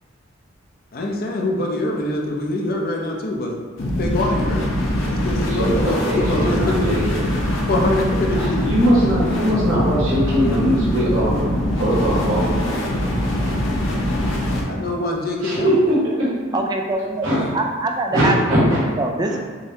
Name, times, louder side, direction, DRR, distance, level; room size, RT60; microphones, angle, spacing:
voice 1, 0.9-3.6 4.0-4.6 5.1-6.9 7.7-8.7 9.2-9.6 14.7-15.7, left 1 dB, 50° left, 0 dB, 0.6 m, -24 dB
sound 1, 3.8-14.6, left 1 dB, 85° left, 0.8 m, -22 dB
voice 2, 5.5-7.3 8.3-12.8 15.4-16.3 17.2-17.4 18.1-18.8 19.3-19.4, equal, 85° right, -8 dB, 1.3 m, -21 dB
voice 3, 16.5-18.7 19.0-19.4, right 2 dB, 20° right, 2 dB, 0.3 m, -24 dB
6.3 x 2.2 x 2.8 m, 1.5 s
head